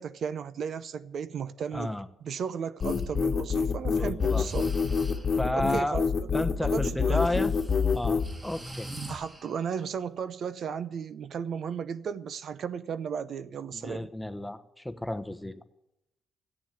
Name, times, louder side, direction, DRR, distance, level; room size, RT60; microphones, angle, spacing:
voice 1, 0.0-1.9 2.2-4.7 5.5-6.1 6.6-7.4 9.1-14.1, right 7 dB, 65° right, 0.7 m, -35 dB
voice 2, 1.7-2.1 3.9-4.5 5.4-6.0 6.3-7.5 7.9-8.9 13.7-15.5, left 1 dB, 5° left, 1.0 m, -32 dB
sound 1, 2.8-8.3, left 5 dB, 45° left, 1.3 m, -26 dB
Breathing, 2.8-3.1 4.2-5.5 7.1-9.8, right 1 dB, 25° right, 2.9 m, -44 dB
13.5 x 9.1 x 9.0 m
cardioid pair, 85°, 0 cm